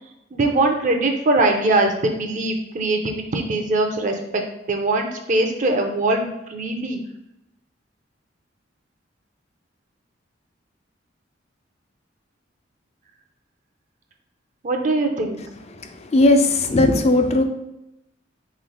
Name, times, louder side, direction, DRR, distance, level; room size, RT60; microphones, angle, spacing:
voice 1, 0.3-4.4 4.7-7.0 14.6-15.4, right 2 dB, 40° right, 3 dB, 0.5 m, -21 dB
voice 2, 16.0-17.4, left 2 dB, 35° left, 7 dB, 0.4 m, -17 dB
4.1 x 3.1 x 3.8 m, 0.88 s
head